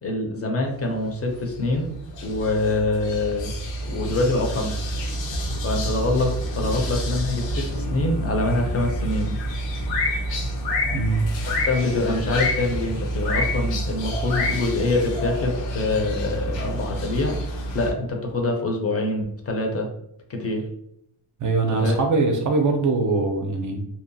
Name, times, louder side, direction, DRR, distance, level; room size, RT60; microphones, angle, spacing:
voice 1, 0.0-1.9 2.2-3.5 3.8-4.8 5.6-9.3 11.6-19.9 20.3-20.6 21.7-22.0, left 2 dB, 35° left, 2 dB, 0.5 m, -25 dB
sound 1, 1.3-17.9, equal, 85° left, 0.8 m, -28 dB
voice 2, 10.9-11.2 21.4-23.8, right 3 dB, 45° right, 3 dB, 0.4 m, -22 dB
2.8 x 2.1 x 2.6 m, 0.74 s
wide cardioid pair, 125°, 43 cm